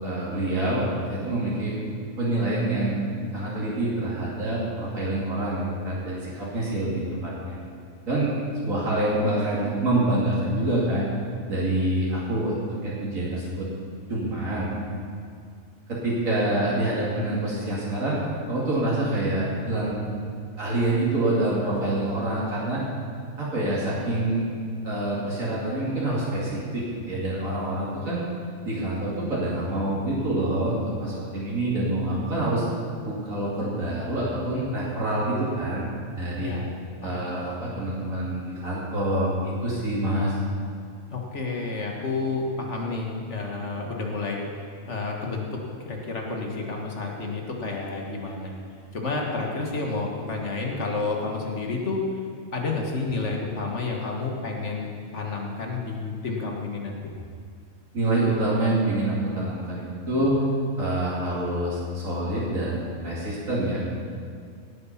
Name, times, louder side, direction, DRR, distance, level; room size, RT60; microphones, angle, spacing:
voice 1, 0.0-1.8 2.2-3.0 3.3-7.6 8.1-8.3 8.6-11.1 11.5-13.7 14.1-14.7 15.9-18.2 18.5-20.0 20.6-22.8 23.4-24.5 24.8-28.2 28.7-32.7 33.0-35.9 36.2-36.6 37.0-40.4 57.9-60.4 60.8-63.8, right 1 dB, 90° right, -7 dB, 3.0 m, -26 dB
voice 2, 36.4-36.7 37.0-37.4 41.1-45.5 45.8-48.6 48.9-52.0 52.5-57.0, left 3 dB, 60° left, 0 dB, 2.1 m, -30 dB
17.5 x 8.2 x 5.9 m, 2.3 s
omnidirectional pair, 1.4 m